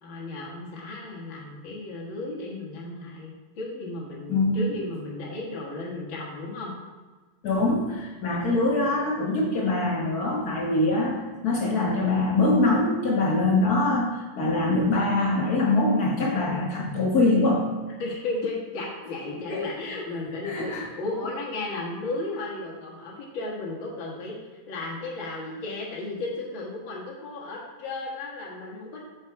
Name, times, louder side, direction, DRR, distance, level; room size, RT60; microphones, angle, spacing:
voice 1, 0.0-6.7 18.0-24.4 24.7-29.0, left 2 dB, 45° left, -5 dB, 2.1 m, -34 dB
voice 2, 4.3-4.6 7.4-17.6 19.5-19.7 20.4-20.8, left 2 dB, 65° left, -2 dB, 0.9 m, -23 dB
7.4 x 6.4 x 4.7 m, 1.3 s
omnidirectional pair, 3.4 m